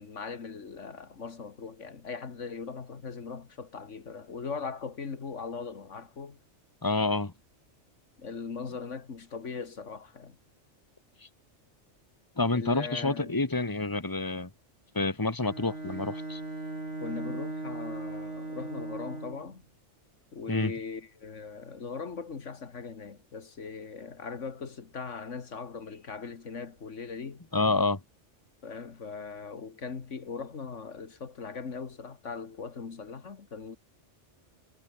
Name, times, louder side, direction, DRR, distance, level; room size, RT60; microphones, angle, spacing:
voice 1, 0.0-6.4 8.2-10.4 12.5-13.5 17.0-19.6 20.3-27.4 28.6-33.8, left 5 dB, 75° left, 2.1 m, -40 dB
voice 2, 6.8-7.3 12.4-14.5 14.9-16.4 20.5-20.7 27.5-28.0, left 3 dB, 15° left, 1.9 m, -28 dB
Bowed string instrument, 15.4-19.6, right 2 dB, 70° right, 4.6 m, -38 dB
omnidirectional pair, 1.3 m